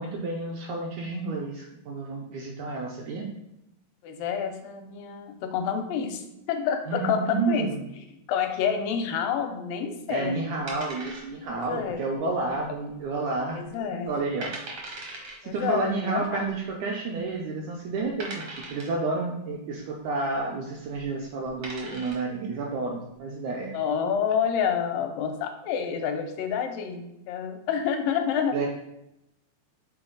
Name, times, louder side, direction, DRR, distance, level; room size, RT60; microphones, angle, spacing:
voice 1, 0.0-3.3 6.9-7.8 10.1-14.5 15.4-23.8 28.5-28.7, right 3 dB, 80° right, -1 dB, 1.7 m, -30 dB
voice 2, 4.0-7.7 8.3-10.6 11.5-12.0 13.5-14.1 15.4-16.4 23.7-28.6, left 7 dB, 80° left, 5 dB, 2.2 m, -28 dB
sound 1, 10.7-11.6 11.9-12.0 12.6-13.0 13.4-13.5 14.1-14.2 14.4-15.4 16.5-16.6 17.2-17.3 18.2-19.0 20.9-21.0 21.4-22.3, right 2 dB, 65° right, 1.2 m, -39 dB
6.1 x 3.9 x 3.9 m, 0.87 s
omnidirectional pair, 4.0 m